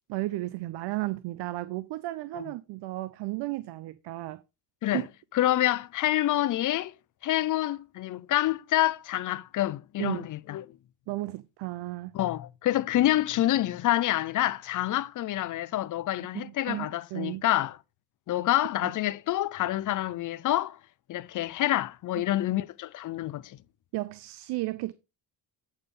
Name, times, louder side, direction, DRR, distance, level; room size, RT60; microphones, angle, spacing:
voice 1, 0.1-4.4 4.8-5.0 10.0-10.3 11.1-12.2 16.3-17.4 22.1-22.2 23.9-24.9, right 18 dB, 80° right, 0.6 m, -34 dB
voice 2, 5.3-6.9 7.2-10.6 12.1-17.8 18.3-20.8 21.1-23.6, left 14 dB, 50° left, 0.5 m, -27 dB
8.2 x 5.6 x 3.7 m
cardioid pair, 110°, 40 cm